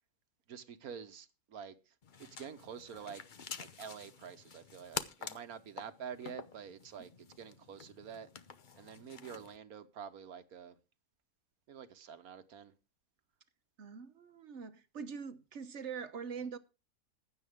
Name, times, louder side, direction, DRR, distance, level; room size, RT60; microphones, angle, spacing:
voice 1, 0.5-1.7 2.2-3.2 3.6-8.3 8.8-10.8 11.7-12.7, right 7 dB, 70° right, 1.5 m, -47 dB
sound 1, 2.0-9.6, left 6 dB, 40° left, 0.7 m, -47 dB
voice 2, 13.8-16.6, right 6 dB, 50° right, 1.2 m, -43 dB
15.5 x 10.5 x 3.6 m
omnidirectional pair, 1.7 m